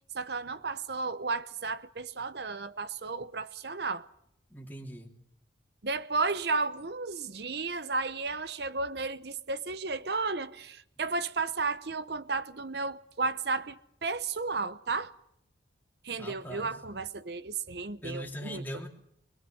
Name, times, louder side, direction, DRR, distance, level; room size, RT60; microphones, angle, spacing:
voice 1, 0.1-4.1 5.8-15.1 16.0-18.6, right 4 dB, 60° right, 0.8 m, -33 dB
voice 2, 4.5-5.1 16.2-16.8 18.0-18.9, equal, 10° left, 2.6 m, -40 dB
25.5 x 21.0 x 6.3 m
head